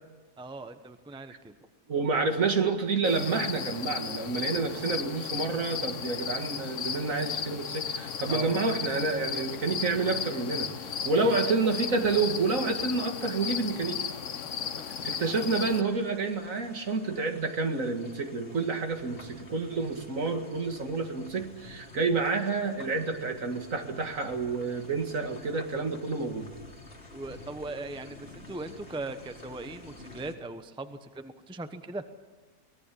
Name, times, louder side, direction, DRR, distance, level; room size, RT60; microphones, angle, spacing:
voice 1, 0.4-1.6 8.3-8.6 11.1-11.6 14.6-14.9 27.1-32.0, right 2 dB, 5° right, 9 dB, 0.8 m, -39 dB
voice 2, 1.9-10.7 11.0-14.0 15.0-26.5, right 4 dB, 60° right, 6 dB, 2.4 m, -29 dB
sound 1, 3.0-15.8, left 7 dB, 60° left, 1.2 m, -35 dB
sound 2, 15.2-30.4, left 2 dB, 40° left, 2.6 m, -50 dB
24.0 x 18.5 x 8.5 m, 1.3 s
omnidirectional pair, 1.6 m